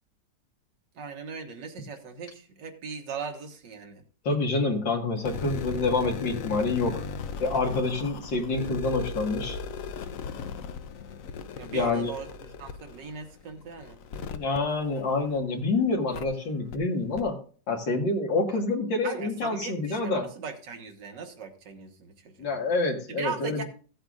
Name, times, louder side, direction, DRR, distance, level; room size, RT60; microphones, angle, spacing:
voice 1, 1.0-4.0 11.5-14.0 18.5-18.6 19.0-22.5 23.1-23.6, right 5 dB, 75° right, 5 dB, 2.0 m, -39 dB
voice 2, 4.2-7.0 7.4-9.6 11.7-12.1 14.3-17.4 17.7-20.3 22.4-23.6, left 3 dB, 90° left, -1 dB, 2.4 m, -27 dB
sound 1, 5.2-15.6 16.1-16.2 16.7-16.8 17.1-17.2, left 5 dB, 60° left, 0.9 m, -37 dB
15.5 x 7.9 x 2.5 m, 0.39 s
omnidirectional pair, 1.9 m